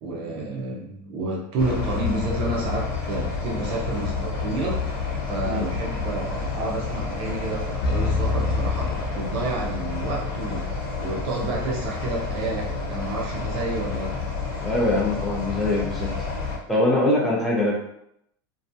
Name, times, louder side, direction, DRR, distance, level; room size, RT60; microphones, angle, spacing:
voice 1, 0.0-4.8 5.3-10.7 11.0-14.2, right 2 dB, 45° right, -2 dB, 0.6 m, -30 dB
sound 1, 1.6-16.6, left 4 dB, 70° left, 1.0 m, -29 dB
sound 2, 7.8-9.9, left 4 dB, 85° left, 0.4 m, -26 dB
voice 2, 14.6-16.1 16.7-17.7, left 1 dB, ahead, -5 dB, 0.6 m, -22 dB
2.6 x 2.2 x 2.6 m, 0.77 s
supercardioid pair, 145°, 12 cm